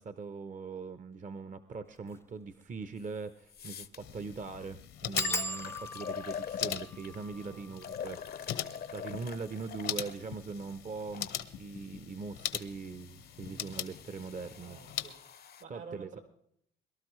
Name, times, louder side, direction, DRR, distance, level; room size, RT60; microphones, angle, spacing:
voice 1, 0.0-8.2 8.9-11.3 11.5-14.8 15.7-16.2, right 4 dB, 40° right, 11 dB, 0.8 m, -41 dB
sound 1, 2.0-2.2 2.6-2.7 2.9-3.0 3.6-3.8 4.1-4.2 5.2-10.4 11.1-11.6 11.9-12.3 12.5-12.6, equal, 15° left, 0.5 m, -41 dB
sound 2, 3.0-3.1 3.5-4.0 4.7-4.8 5.2-7.2 7.8-11.4 12.2-15.6, left 8 dB, 55° left, 0.7 m, -44 dB
sound 3, 4.0-15.1, left 10 dB, 80° left, 1.2 m, -41 dB
voice 2, 7.3-7.7 13.4-13.8 14.6-15.2 15.6-16.2, right 4 dB, 80° right, 3 dB, 3.9 m, -50 dB
22.5 x 12.5 x 3.2 m, 0.68 s
cardioid pair, 80°, 19 cm